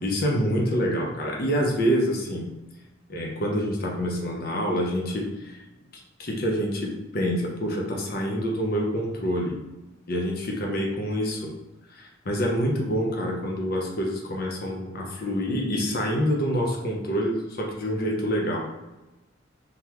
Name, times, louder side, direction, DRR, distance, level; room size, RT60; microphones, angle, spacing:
voice 1, 0.0-2.4 3.1-5.6 6.2-9.6 10.1-11.5 11.9-18.7, equal, 55° left, -1 dB, 0.8 m, -26 dB
3.9 x 3.4 x 3.0 m, 1.0 s
head